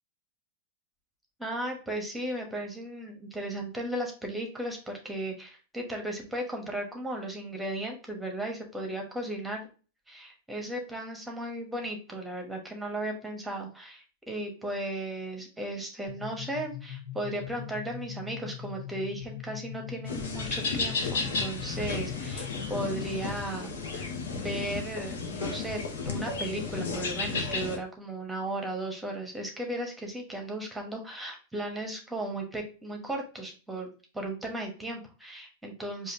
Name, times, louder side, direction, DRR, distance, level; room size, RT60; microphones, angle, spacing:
voice 1, 1.4-9.7 10.1-36.1, right 1 dB, 5° right, 2 dB, 1.1 m, -36 dB
sound 1, 16.1-23.6, left 11 dB, 25° left, 1.6 m, -41 dB
sound 2, 20.1-27.8, left 4 dB, 75° left, 0.9 m, -33 dB
4.9 x 2.5 x 2.6 m, 0.36 s
hypercardioid pair, 110°, 0 cm